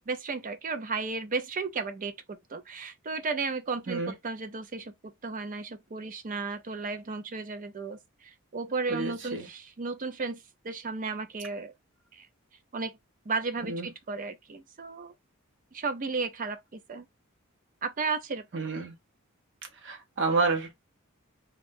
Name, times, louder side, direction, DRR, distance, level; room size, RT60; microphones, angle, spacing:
voice 1, 0.0-11.7 12.1-12.3 12.7-12.9 13.3-15.1 15.7-17.1 17.8-18.6, right 4 dB, 40° right, 0.5 m, -34 dB
voice 2, 8.9-9.5 13.6-13.9 18.5-18.9 19.8-20.7, right 3 dB, 60° right, 0.9 m, -29 dB
2.5 x 2.4 x 3.6 m
head